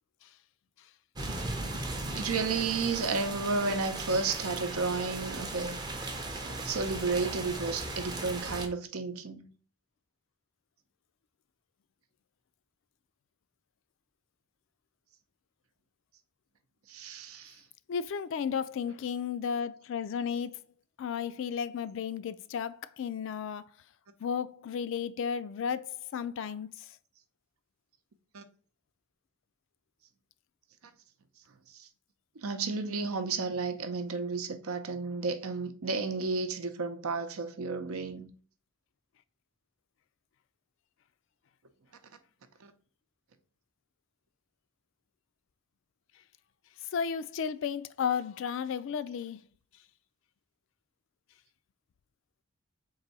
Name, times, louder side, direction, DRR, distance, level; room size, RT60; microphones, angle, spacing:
sound 1, 1.2-8.7, right 2 dB, 20° right, 0.5 m, -37 dB
voice 1, 2.1-5.8 6.6-9.5 16.9-17.6 28.3-28.4 31.8-31.9 32.4-38.3 42.6-42.7, right 4 dB, 85° right, 0.7 m, -32 dB
voice 2, 17.9-20.6 21.0-23.6 24.2-26.9 46.9-49.4, left 7 dB, 60° left, 0.3 m, -33 dB
4.0 x 2.6 x 4.1 m
head